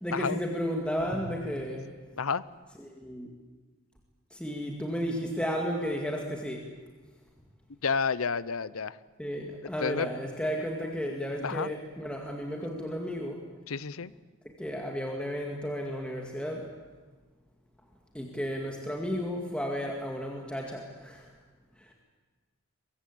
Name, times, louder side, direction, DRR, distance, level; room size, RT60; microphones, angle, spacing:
voice 1, 0.0-1.9 2.8-3.3 4.3-6.7 9.2-13.4 14.6-16.7 18.1-21.3 21.8-21.9, equal, 5° left, 0 dB, 2.0 m, -33 dB
voice 2, 7.8-9.0 9.8-10.1 11.4-11.7 13.7-14.1, left 5 dB, 75° left, 18 dB, 0.7 m, -30 dB
23.5 x 22.0 x 8.6 m, 1.4 s
head